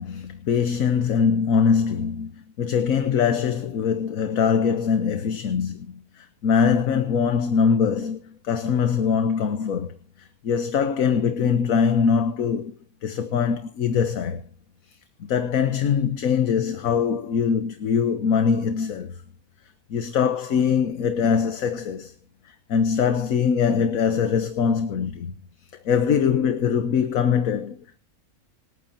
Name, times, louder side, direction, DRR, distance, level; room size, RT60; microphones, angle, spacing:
voice 1, 0.0-12.8 13.0-14.5 15.2-19.2 19.9-22.1 22.5-25.3 25.8-27.8, left 6 dB, 65° left, 1.4 m, -22 dB
26.5 x 9.0 x 2.8 m
omnidirectional pair, 1.6 m